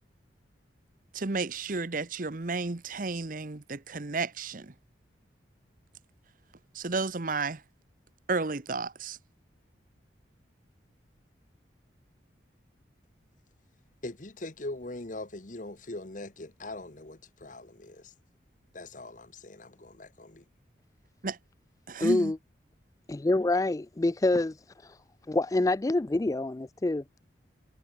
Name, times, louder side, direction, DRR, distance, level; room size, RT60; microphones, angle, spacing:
voice 1, 1.1-4.7 6.7-7.6 8.3-9.2 21.2-21.4 21.9-22.3, right 3 dB, 45° right, 0.9 m, -32 dB
voice 2, 14.0-18.1 18.7-20.4, left 2 dB, 40° left, 1.3 m, -41 dB
voice 3, 22.0-22.4 23.1-25.0 25.3-27.0, left 2 dB, 20° left, 0.3 m, -26 dB
head